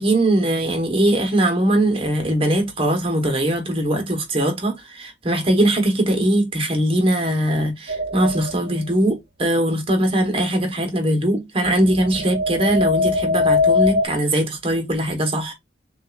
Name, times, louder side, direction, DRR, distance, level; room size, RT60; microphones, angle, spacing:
voice 1, 0.0-15.5, right 1 dB, 30° right, 1.0 m, -21 dB
sound 1, 7.9-8.6 11.9-14.1, left 3 dB, 55° right, 0.9 m, -20 dB
6.3 x 2.4 x 2.3 m
head